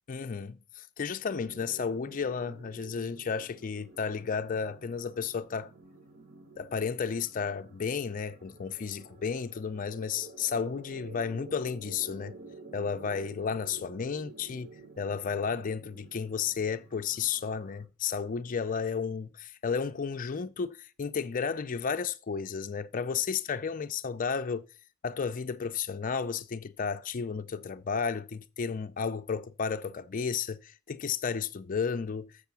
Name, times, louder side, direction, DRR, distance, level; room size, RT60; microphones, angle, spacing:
voice 1, 0.1-5.7 6.6-12.4 12.7-14.7 15.0-24.6 25.0-32.3, left 6 dB, 40° left, 0.4 m, -33 dB
sound 1, 1.3-17.9, right 3 dB, 45° right, 1.1 m, -51 dB
6.7 x 5.7 x 6.9 m
head